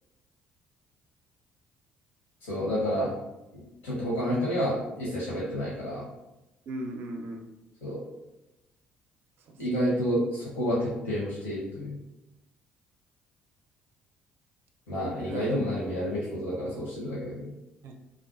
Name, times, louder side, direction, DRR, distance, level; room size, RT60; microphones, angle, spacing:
voice 1, 2.4-3.1 3.5-6.1 7.8-8.0 9.6-12.0 14.9-17.5, equal, 80° left, -7 dB, 0.8 m, -29 dB
voice 2, 6.7-7.5 9.4-10.0 15.2-15.5 17.8-17.9, right 1 dB, 55° right, 3 dB, 0.4 m, -39 dB
2.4 x 2.3 x 2.4 m, 0.98 s
figure-of-eight pair, 50°, 5 cm